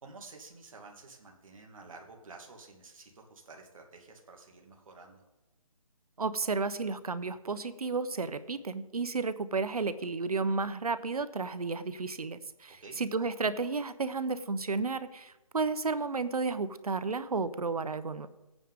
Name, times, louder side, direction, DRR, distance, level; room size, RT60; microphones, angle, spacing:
voice 1, 0.0-5.2 12.8-13.0, right 3 dB, 65° right, 2 dB, 2.3 m, -51 dB
voice 2, 6.2-18.3, right 4 dB, 90° right, 14 dB, 0.9 m, -32 dB
15.5 x 9.2 x 3.7 m, 1.0 s
hypercardioid pair, 155°, 19 cm